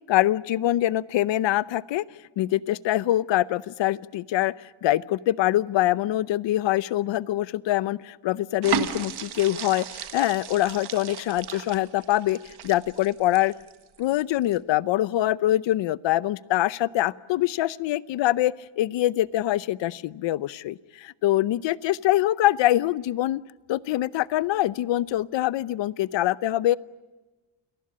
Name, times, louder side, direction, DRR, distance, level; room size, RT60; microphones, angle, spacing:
voice 1, 0.1-2.0 2.4-13.5 14.0-23.4 23.7-26.8, left 14 dB, 65° left, 19 dB, 0.7 m, -24 dB
sound 1, 8.6-14.0 14.4-14.6, right 9 dB, 55° right, 1.7 m, -34 dB
28.5 x 19.0 x 8.6 m, 1.2 s
cardioid pair, 160°, 48 cm